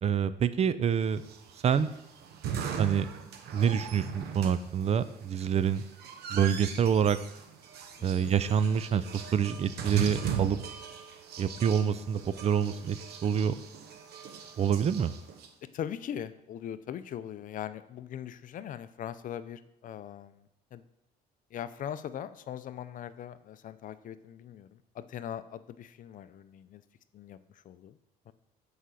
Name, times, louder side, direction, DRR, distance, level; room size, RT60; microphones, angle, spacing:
voice 1, 0.0-1.2 1.6-1.9 2.8-3.1 3.5-5.8 6.3-7.2 8.0-10.6 11.4-13.5 14.6-15.1, right 7 dB, 40° right, 14 dB, 0.5 m, -27 dB
sound 1, 1.2-15.5, right 7 dB, 75° right, 1.0 m, -39 dB
voice 2, 8.0-8.3 15.7-20.8 21.5-26.8 27.1-28.0 28.3-28.4, left 9 dB, 50° left, 13 dB, 0.6 m, -41 dB
8.0 x 5.0 x 6.3 m, 0.85 s
cardioid pair, 110°, 17 cm